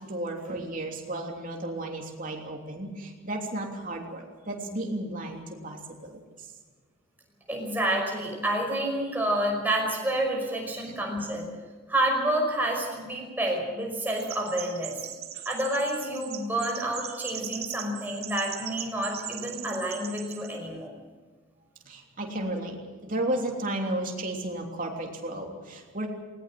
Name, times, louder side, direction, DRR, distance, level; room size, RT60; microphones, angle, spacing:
voice 1, 0.0-6.5 10.9-11.0 15.3-15.4 21.8-26.1, right 1 dB, 40° right, 1 dB, 3.2 m, -33 dB
voice 2, 7.5-11.5 11.9-15.1 15.5-20.9, right 1 dB, 10° right, -1 dB, 5.6 m, -29 dB
Chirp tweet, 14.0-20.6, right 10 dB, 80° right, 1.9 m, -40 dB
19.5 x 19.5 x 7.7 m, 1.4 s
head